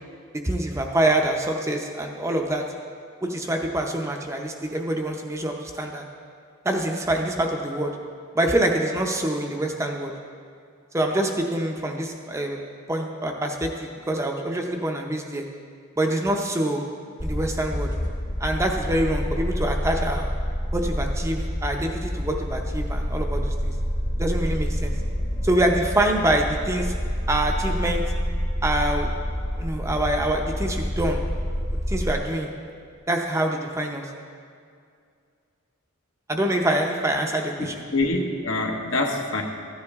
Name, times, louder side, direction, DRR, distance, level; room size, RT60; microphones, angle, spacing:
voice 1, 0.4-2.6 3.2-6.0 6.6-7.9 8.3-10.1 10.9-12.6 12.9-15.4 16.0-16.8 17.2-17.9 18.4-20.3 20.7-23.7 24.2-24.9 25.4-26.9 27.3-28.0 28.6-29.1 29.6-31.2 31.7-32.5 33.1-34.1 36.3-37.8, right 1 dB, 15° right, 2 dB, 0.6 m, -25 dB
sound 1, 17.2-32.1, equal, 35° left, 1.1 m, -28 dB
voice 2, 37.6-39.4, left 2 dB, 70° left, 1 dB, 1.2 m, -25 dB
14.5 x 9.6 x 3.6 m, 2.3 s
head